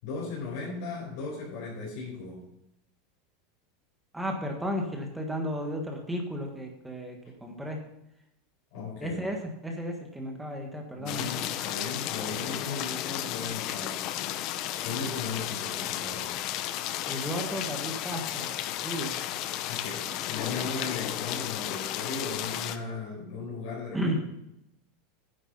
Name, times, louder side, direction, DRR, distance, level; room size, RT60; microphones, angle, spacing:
voice 1, 0.0-2.5 8.7-9.2 11.0-14.1 14.8-16.3 19.7-24.0, left 4 dB, 60° left, -4 dB, 4.5 m, -37 dB
voice 2, 4.1-7.8 9.0-9.4 9.6-11.3 17.1-18.5 18.8-19.1 23.9-24.2, equal, 5° right, 2 dB, 1.6 m, -33 dB
sound 1, 11.1-22.8, left 12 dB, 45° left, 0.7 m, -33 dB
9.9 x 7.9 x 5.5 m, 0.83 s
supercardioid pair, 150°, 0 cm